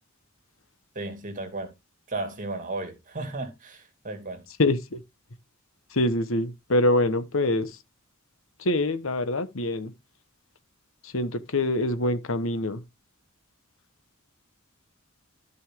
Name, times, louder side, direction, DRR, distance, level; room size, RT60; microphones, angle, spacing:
voice 1, 0.9-1.7 2.1-4.4, right 2 dB, 40° right, 2.5 m, -34 dB
voice 2, 4.6-5.0 5.9-7.8 8.6-9.9 11.0-12.8, left 1 dB, 70° left, 1.2 m, -25 dB
13.0 x 5.5 x 3.6 m
head